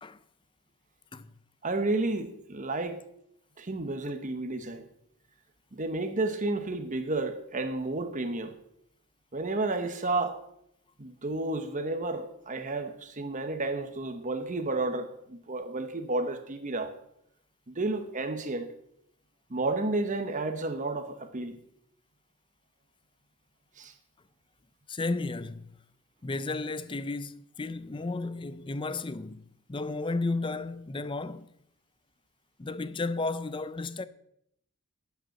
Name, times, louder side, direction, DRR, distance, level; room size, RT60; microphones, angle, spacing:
voice 1, 1.6-3.0 3.6-4.9 5.7-8.5 9.3-10.4 11.0-16.9 17.7-18.7 19.5-21.6 23.8-23.9, right 2 dB, 35° right, 1.0 m, -31 dB
voice 2, 24.9-25.7 26.2-31.5 32.6-34.1, left 3 dB, 20° left, 0.5 m, -33 dB
11.0 x 9.0 x 6.7 m
head